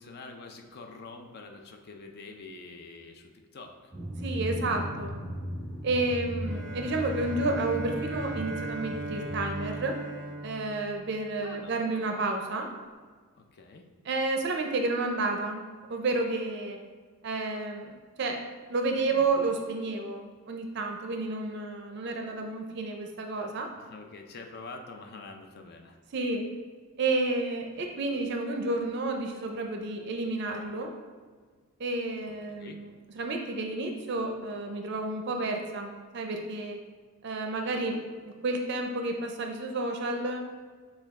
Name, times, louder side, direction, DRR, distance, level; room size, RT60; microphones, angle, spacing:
voice 1, 0.0-3.7 11.4-11.7 13.4-13.9 19.1-19.3 23.8-26.0 32.5-32.8, left 3 dB, 50° left, 4 dB, 0.5 m, -46 dB
Drum, 3.9-10.4, equal, 5° left, 0.9 m, -37 dB
voice 2, 4.2-5.2 5.8-10.0 10.4-12.7 14.0-15.6 15.9-16.8 17.2-17.9 18.2-18.4 18.7-23.7 26.1-26.5 27.0-30.9 31.8-36.8 37.2-38.0 38.3-40.4, right 2 dB, 55° right, 3 dB, 0.4 m, -31 dB
Bowed string instrument, 6.4-11.6, right 1 dB, 75° left, 1.2 m, -39 dB
6.6 x 2.3 x 3.5 m, 1.5 s
head